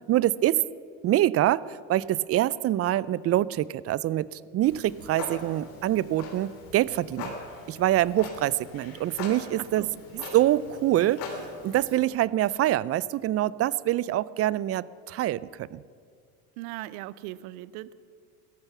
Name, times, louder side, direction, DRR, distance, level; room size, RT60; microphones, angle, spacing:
voice 1, 0.1-0.6 1.0-7.3 7.7-9.9 10.3-11.2 11.6-15.8, right 14 dB, 35° right, 21 dB, 0.4 m, -25 dB
Clock, 4.6-12.1, left 3 dB, 75° left, 3.8 m, -41 dB
voice 2, 9.6-10.2 16.6-17.9, right 16 dB, 75° right, 18 dB, 0.7 m, -39 dB
17.0 x 14.0 x 6.0 m, 2.3 s
supercardioid pair, 90°, 44 cm